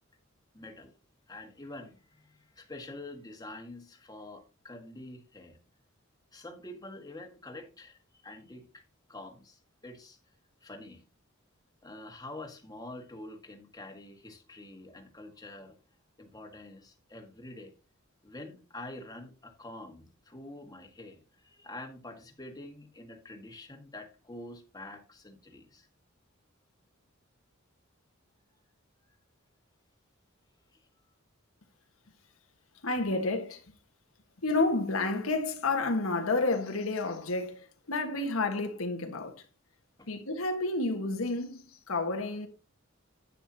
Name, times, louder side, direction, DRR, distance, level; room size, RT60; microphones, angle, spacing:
voice 1, 0.5-1.0 1.3-5.6 6.3-8.8 9.1-10.2 10.6-11.0 11.8-15.8 16.2-17.7 18.2-25.9 30.7-30.9 40.0-40.1, left 2 dB, 20° left, 1.6 m, -46 dB
voice 2, 32.8-33.6 34.4-39.4 40.1-42.5, left 2 dB, 80° left, 1.5 m, -30 dB
10.0 x 9.3 x 2.8 m
head